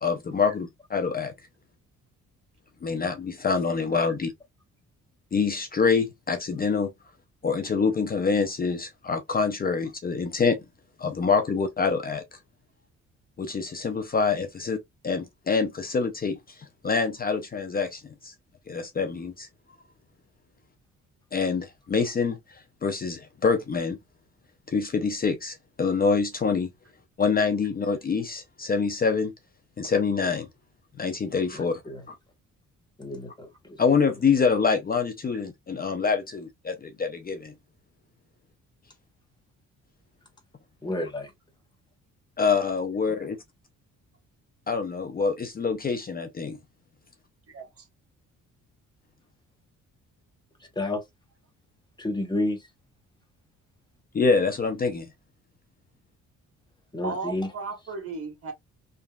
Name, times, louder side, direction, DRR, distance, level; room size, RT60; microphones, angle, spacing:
voice 1, 0.0-1.3 2.8-4.3 5.3-6.9 7.4-10.6 11.0-12.2 13.4-14.8 15.0-18.3 18.7-19.5 21.3-24.0 24.7-26.7 27.2-29.3 29.8-30.5 31.0-31.8 32.1-32.2 33.8-37.5 42.4-43.4 44.7-46.6 54.1-55.1, left 5 dB, 30° left, 0.5 m, -26 dB
voice 2, 31.5-32.0 33.0-33.8 40.8-41.3 50.8-51.0 52.0-52.6 56.9-57.5, left 1 dB, 15° left, 0.9 m, -30 dB
voice 3, 47.5-47.9 57.0-58.5, right 4 dB, 50° right, 1.1 m, -35 dB
2.9 x 2.5 x 2.3 m
cardioid pair, 90°, 30 cm